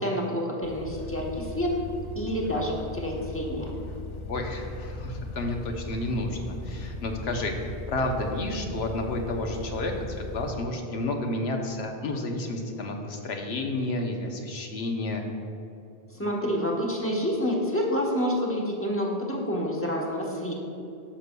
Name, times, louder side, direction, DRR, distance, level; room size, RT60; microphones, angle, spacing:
voice 1, 0.0-1.7 2.2-3.7 16.1-20.5, equal, 15° left, -2 dB, 0.9 m, -28 dB
sound 1, 0.6-10.5, left 2 dB, 45° left, 0.4 m, -38 dB
voice 2, 4.3-7.6 7.9-15.3, left 2 dB, 80° left, 3 dB, 1.0 m, -31 dB
11.5 x 6.6 x 2.2 m, 2.6 s
omnidirectional pair, 1.1 m